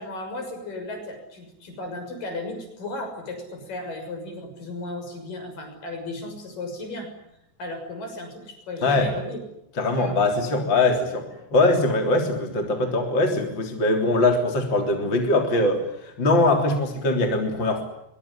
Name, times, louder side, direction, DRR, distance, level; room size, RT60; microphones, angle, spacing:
voice 1, 0.0-7.1 7.6-9.4 10.0-10.2 10.9-11.0, left 2 dB, 45° left, 6 dB, 7.7 m, -35 dB
voice 2, 9.8-17.8, left 2 dB, 25° left, 3 dB, 3.4 m, -22 dB
24.0 x 23.5 x 10.0 m, 0.81 s
omnidirectional pair, 5.7 m